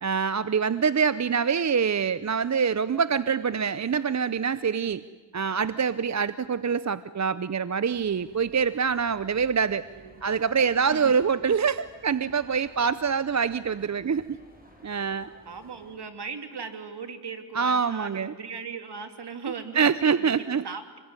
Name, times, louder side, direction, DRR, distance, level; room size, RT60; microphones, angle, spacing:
voice 1, 0.0-5.0 5.3-9.8 10.2-14.4 14.8-15.3 17.5-18.3 19.7-20.6, right 6 dB, 40° right, 15 dB, 0.7 m, -25 dB
sound 1, 7.9-16.0, equal, 20° right, 7.7 m, -54 dB
voice 2, 15.5-21.0, right 5 dB, 60° right, 7 dB, 3.0 m, -38 dB
27.0 x 21.0 x 9.7 m, 1.3 s
cardioid pair, 55°, 44 cm